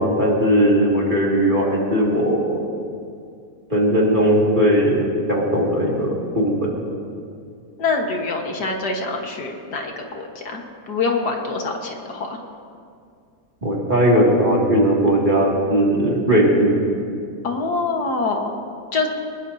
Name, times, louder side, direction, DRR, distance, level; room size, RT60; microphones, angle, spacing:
voice 1, 0.0-2.6 3.7-5.0 5.3-6.7 13.6-16.7, equal, 30° right, -4 dB, 2.6 m, -18 dB
voice 2, 7.8-12.4 17.4-18.5 18.9-19.1, left 3 dB, 75° left, 2 dB, 2.1 m, -25 dB
22.5 x 20.0 x 2.8 m, 2.3 s
omnidirectional pair, 1.8 m